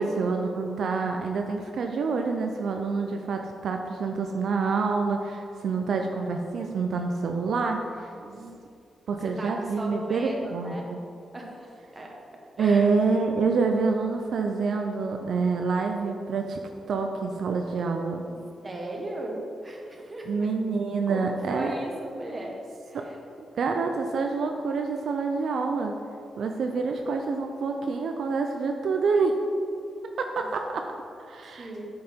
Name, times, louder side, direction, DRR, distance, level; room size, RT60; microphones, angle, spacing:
voice 1, 0.0-8.1 9.1-11.0 12.6-16.6 16.9-18.2 20.3-21.7 22.9-23.1 23.5-26.0 26.4-29.4 30.2-30.8 31.2-31.7, right 4 dB, 70° right, 3 dB, 0.5 m, -27 dB
voice 2, 8.1-8.5 9.2-10.9 11.3-12.1 12.6-12.9 14.7-14.8 18.3-18.4 18.6-20.5 21.1-22.5 22.9-23.2 31.6-31.9, right 1 dB, 25° right, -1 dB, 1.3 m, -37 dB
8.6 x 5.6 x 4.4 m, 2.5 s
wide cardioid pair, 130°, 0 cm